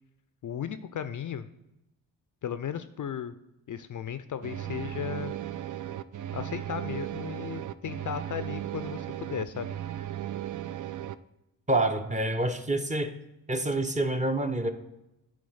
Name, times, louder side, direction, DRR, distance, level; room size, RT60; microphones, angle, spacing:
voice 1, 0.4-1.5 2.4-3.3 3.7-5.3 6.3-9.7, left 9 dB, 45° left, 12 dB, 0.5 m, -35 dB
sound 1, 4.4-11.1, right 12 dB, 45° right, 0.4 m, -36 dB
voice 2, 11.7-13.1 13.5-14.7, right 2 dB, 15° right, 6 dB, 0.8 m, -27 dB
8.5 x 3.3 x 5.5 m, 0.90 s
supercardioid pair, 40°, 44 cm